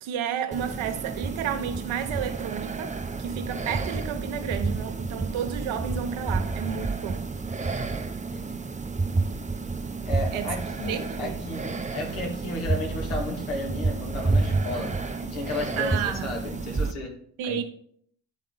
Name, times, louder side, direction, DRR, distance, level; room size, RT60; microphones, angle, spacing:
voice 1, 0.0-7.3 10.3-10.5 10.9-11.3 15.8-16.3 17.4-17.6, right 8 dB, 70° right, 1.0 m, -31 dB
sound 1, 0.5-16.9, right 3 dB, 15° right, 0.7 m, -30 dB
voice 2, 8.3-8.7 10.0-14.9 15.2-17.1 17.4-17.6, left 2 dB, 80° left, 1.9 m, -34 dB
10.0 x 3.6 x 3.9 m
hypercardioid pair, 45°, 49 cm